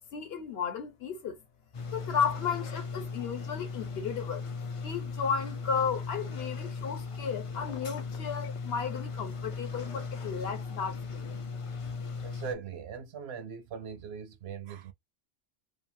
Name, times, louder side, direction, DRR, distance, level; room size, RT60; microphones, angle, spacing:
voice 1, 0.1-1.4 1.9-4.5 4.8-11.2, left 6 dB, 65° left, 1.0 m, -34 dB
sound 1, 1.7-12.5, left 4 dB, 45° left, 0.4 m, -38 dB
Telephone, 7.6-8.7, left 5 dB, 90° left, 1.0 m, -50 dB
voice 2, 12.2-14.9, right 7 dB, 70° right, 0.8 m, -40 dB
2.8 x 2.4 x 2.6 m
omnidirectional pair, 1.2 m